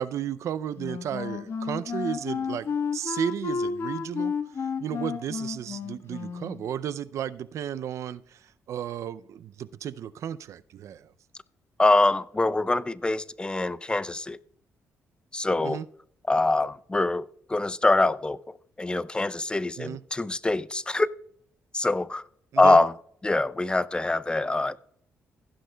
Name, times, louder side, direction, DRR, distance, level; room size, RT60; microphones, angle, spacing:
voice 1, 0.0-11.1 15.6-15.9 19.8-20.0 22.5-22.8, right 9 dB, 70° right, 0.4 m, -34 dB
Wind instrument woodwind instrument, 0.8-6.6, left 6 dB, 55° left, 1.3 m, -32 dB
voice 2, 11.8-14.4 15.3-15.8 16.3-21.1 21.7-22.2 22.6-22.9 23.2-24.8, left 2 dB, 15° left, 0.5 m, -24 dB
16.0 x 10.0 x 2.2 m
cardioid pair, 75°, 5 cm